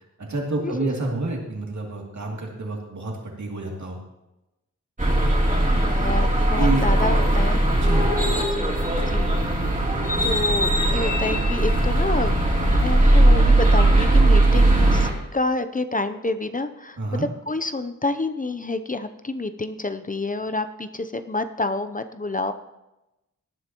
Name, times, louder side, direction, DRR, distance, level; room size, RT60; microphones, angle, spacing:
voice 1, 0.2-4.0 6.6-6.8 7.8-8.1 17.0-17.3, right 2 dB, 70° right, -1 dB, 2.7 m, -28 dB
sound 1, 5.0-15.1, right 1 dB, 25° right, 3.0 m, -19 dB
voice 2, 5.7-7.6 8.5-8.8 9.1-9.4 10.2-22.5, left 2 dB, 30° left, 10 dB, 0.6 m, -28 dB
18.5 x 10.0 x 3.0 m, 0.96 s
wide cardioid pair, 75°, 30 cm